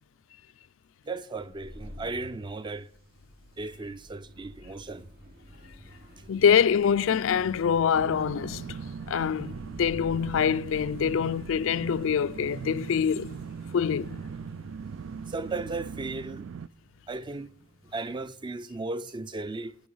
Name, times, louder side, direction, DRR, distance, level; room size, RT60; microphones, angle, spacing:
voice 1, 1.1-2.9 3.6-5.1 15.3-16.5 17.1-17.5 17.9-19.8, right 3 dB, 25° right, 0.4 m, -35 dB
sound 1, 1.3-18.7, equal, 50° right, 5.7 m, -49 dB
voice 2, 6.3-8.8 9.1-13.4 13.7-14.2, left 7 dB, 75° left, 0.4 m, -25 dB
sound 2, 7.9-16.7, right 6 dB, 85° right, 0.4 m, -40 dB
19.0 x 6.3 x 5.5 m
head